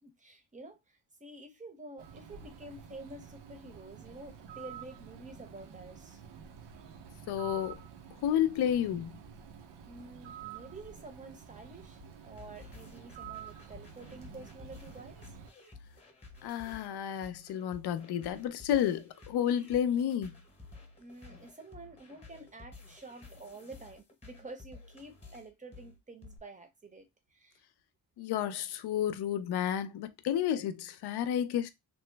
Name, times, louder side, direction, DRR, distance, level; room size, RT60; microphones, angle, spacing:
voice 1, 0.0-6.2 9.9-15.4 21.0-27.6, right 2 dB, 20° right, 0.7 m, -49 dB
Bird, 2.0-15.5, right 8 dB, 90° right, 0.6 m, -49 dB
voice 2, 7.3-7.8 8.2-9.1 16.4-20.4 28.2-31.7, left 10 dB, 75° left, 0.5 m, -31 dB
sound 1, 12.0-26.4, left 3 dB, 15° left, 0.9 m, -53 dB
3.0 x 2.0 x 3.2 m
cardioid pair, 115°, 40 cm